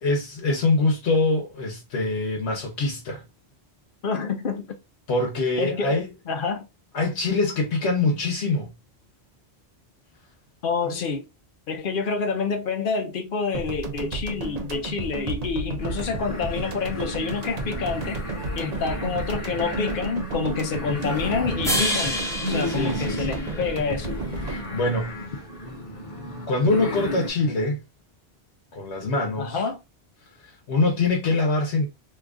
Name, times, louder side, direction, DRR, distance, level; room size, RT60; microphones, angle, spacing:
voice 1, 0.0-3.2 5.1-6.0 6.9-8.7 10.9-11.0 22.7-23.4 24.4-25.1 26.5-27.8 28.7-29.6 30.4-31.9, left 3 dB, 85° left, 1.1 m, -24 dB
voice 2, 4.0-4.8 5.6-6.7 10.6-11.3 11.7-18.2 18.6-24.2 29.4-29.8, left 5 dB, 60° left, 0.7 m, -28 dB
sound 1, 13.5-26.0, right 3 dB, 45° right, 0.6 m, -33 dB
sound 2, 15.8-27.3, left 1 dB, 30° left, 1.0 m, -34 dB
sound 3, 21.6-24.0, left 1 dB, 5° left, 0.5 m, -29 dB
2.8 x 2.4 x 3.5 m
omnidirectional pair, 1.1 m